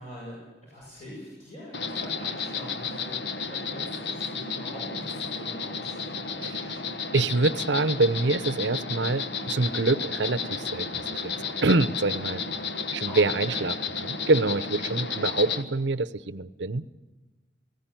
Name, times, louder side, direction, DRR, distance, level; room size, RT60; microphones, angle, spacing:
voice 1, 0.0-6.0 13.1-13.6, equal, 35° left, -5 dB, 7.4 m, -43 dB
Insect, 1.7-15.6, left 5 dB, 65° left, 1.4 m, -32 dB
voice 2, 6.4-6.8 7.1-11.3 11.6-12.4 12.9-13.7 14.0-16.9, right 3 dB, 80° right, 14 dB, 0.8 m, -25 dB
19.5 x 17.5 x 9.1 m, 1.2 s
head